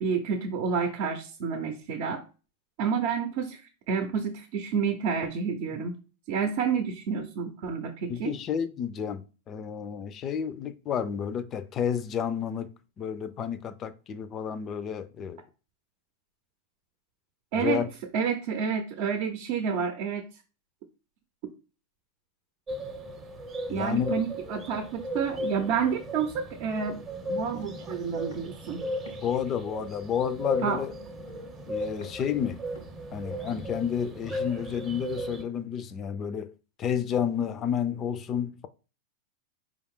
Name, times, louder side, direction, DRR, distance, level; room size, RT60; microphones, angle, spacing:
voice 1, 0.0-2.2 2.8-3.6 3.9-6.0 6.3-8.3 17.5-17.9 18.1-20.3 23.7-26.3 26.6-27.0 27.3-28.9 30.6-30.8, right 6 dB, 60° right, 0.6 m, -29 dB
voice 2, 8.1-12.7 13.0-15.4 17.5-17.9 23.7-24.1 29.2-30.9 31.7-32.6 33.1-36.5 36.8-38.7, left 8 dB, 35° left, 0.4 m, -30 dB
sound 1, 22.7-35.4, equal, 25° right, 0.7 m, -36 dB
sound 2, 27.5-27.8 28.3-28.6 29.1-29.2 29.8-30.1 30.6-30.9 31.3-31.6 32.0-32.3 32.8-33.2 33.5-33.7, left 2 dB, 85° left, 1.0 m, -48 dB
4.6 x 2.4 x 3.6 m
hypercardioid pair, 115°, 0 cm